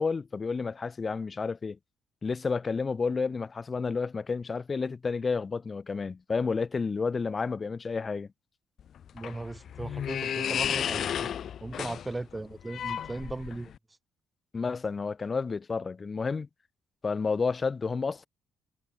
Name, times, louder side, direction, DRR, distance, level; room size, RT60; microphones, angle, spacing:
voice 1, 0.0-1.8 2.2-8.3 14.5-16.5 17.0-18.3, left 4 dB, 35° left, 1.7 m, -30 dB
sound 1, 8.8-13.8, left 9 dB, 60° left, 2.8 m, -33 dB
voice 2, 9.1-11.3 11.6-13.7, right 2 dB, 15° right, 6.7 m, -37 dB
cardioid pair, 90°, 0 cm